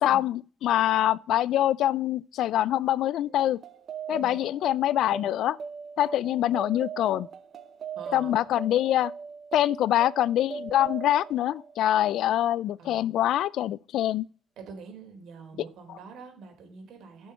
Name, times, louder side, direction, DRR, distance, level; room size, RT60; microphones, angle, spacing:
voice 1, 0.0-3.6 4.1-5.6 6.0-7.3 8.1-9.1 9.5-14.3, left 12 dB, 80° left, 0.4 m, -25 dB
sound 1, 3.3-12.3, right 6 dB, 55° right, 1.0 m, -40 dB
voice 2, 8.0-8.3 12.8-13.2 14.6-17.3, right 5 dB, 80° right, 3.8 m, -45 dB
14.0 x 6.3 x 5.7 m
cardioid pair, 90°, 0 cm